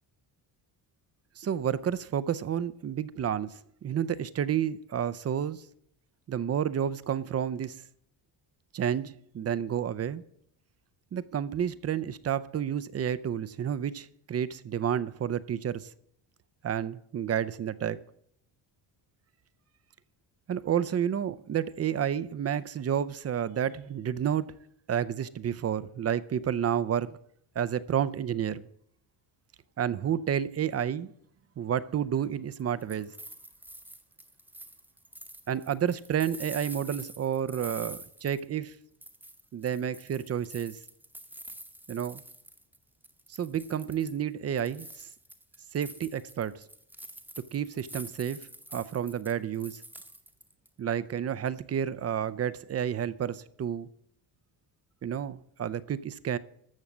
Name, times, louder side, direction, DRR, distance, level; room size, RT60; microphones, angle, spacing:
voice 1, 1.4-5.7 6.3-7.8 8.7-10.2 11.1-15.9 16.6-18.0 20.5-24.5 24.9-27.2 27.6-28.7 29.8-31.1 31.6-33.1 35.5-38.8 39.5-40.8 41.9-42.2 43.3-45.1 45.7-46.6 47.5-49.8 50.8-53.9 55.0-56.4, right 9 dB, 35° right, 0.5 m, -30 dB
sound 1, 32.6-38.7 39.0-42.8 43.0-44.2 44.6-50.7, right 1 dB, 5° right, 0.9 m, -47 dB
14.0 x 6.3 x 7.2 m
cardioid pair, 160°, 45 cm